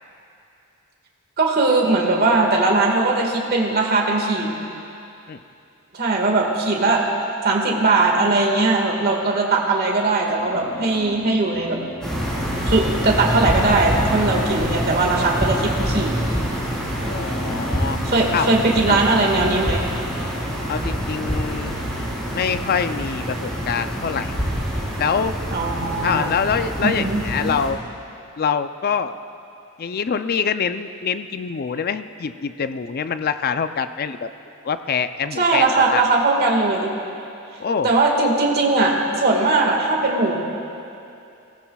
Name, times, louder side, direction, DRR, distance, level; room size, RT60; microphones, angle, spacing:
voice 1, 1.4-4.5 5.9-7.0 7.4-11.8 12.6-16.1 18.0-19.8 25.5-26.4 26.8-27.6 35.4-36.9 37.8-40.4, right 3 dB, 45° right, 0 dB, 1.8 m, -19 dB
sound 1, 10.4-18.8, right 2 dB, 25° left, 3.5 m, -38 dB
sound 2, 12.0-27.7, equal, 5° left, 3.7 m, -26 dB
voice 2, 17.0-18.0 18.3-18.5 18.9-19.0 20.7-21.7 22.3-24.3 25.0-25.3 26.0-27.8 28.4-29.2 29.8-34.3 34.6-36.0 37.6-37.9, left 6 dB, 45° left, 10 dB, 0.4 m, -24 dB
22.5 x 17.5 x 2.3 m, 2.7 s
head